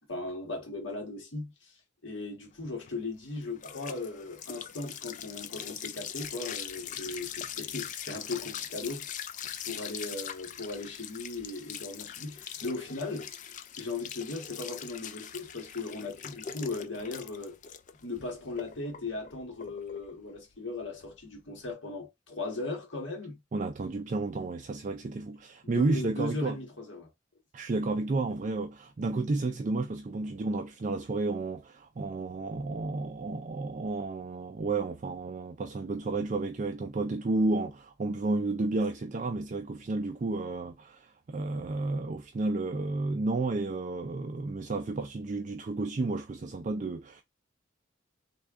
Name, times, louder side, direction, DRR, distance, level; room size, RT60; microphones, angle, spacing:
voice 1, 0.1-1.7 2.0-9.1 9.6-13.3 13.8-17.6 18.0-23.4 25.6-27.1, left 2 dB, 75° left, 1.5 m, -37 dB
sound 1, 2.6-21.7, left 9 dB, 40° left, 0.3 m, -42 dB
voice 2, 23.5-26.6 27.5-47.2, right 3 dB, 40° right, 0.4 m, -32 dB
3.4 x 2.3 x 3.5 m
head